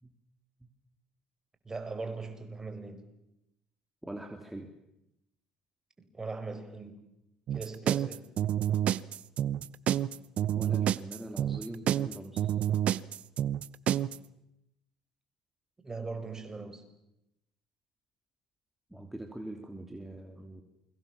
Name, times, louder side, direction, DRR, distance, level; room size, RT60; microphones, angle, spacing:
voice 1, 1.7-3.1 6.0-7.1 7.5-8.3 15.8-16.8, right 3 dB, 25° right, 5.2 m, -40 dB
voice 2, 4.0-4.7 10.5-12.4 18.9-20.6, right 1 dB, 5° right, 3.1 m, -43 dB
sound 1, 7.5-14.2, right 11 dB, 55° right, 0.9 m, -28 dB
28.5 x 23.5 x 7.2 m
supercardioid pair, 75°, 2 cm